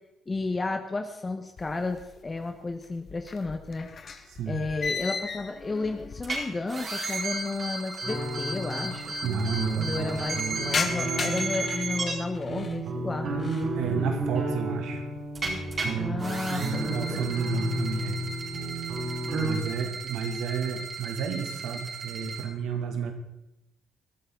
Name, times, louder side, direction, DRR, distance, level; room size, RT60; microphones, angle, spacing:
voice 1, 0.3-3.9 4.5-9.1 9.7-13.3 15.9-17.3, left 3 dB, 25° left, 5 dB, 1.4 m, -32 dB
sound 1, 1.6-2.4 2.7-6.8 7.1-7.2 8.1-8.2 8.3-8.4 8.7-9.2 9.6-12.8 13.2-13.8 14.2-14.6 15.0-15.9, left 5 dB, 45° left, 1.7 m, -36 dB
voice 2, 4.3-4.6 9.2-10.3 13.8-15.0 15.8-16.2 16.6-18.2 19.4-23.1, right 6 dB, 85° right, 4 dB, 2.7 m, -32 dB
sound 2, 6.2-6.4 6.7-12.1 15.4-15.9 16.2-22.4, right 3 dB, 40° right, 4.5 m, -35 dB
sound 3, 8.0-19.5, right 2 dB, 60° right, 6.7 m, -32 dB
20.5 x 13.0 x 4.1 m, 0.88 s
cardioid pair, 90°, 0 cm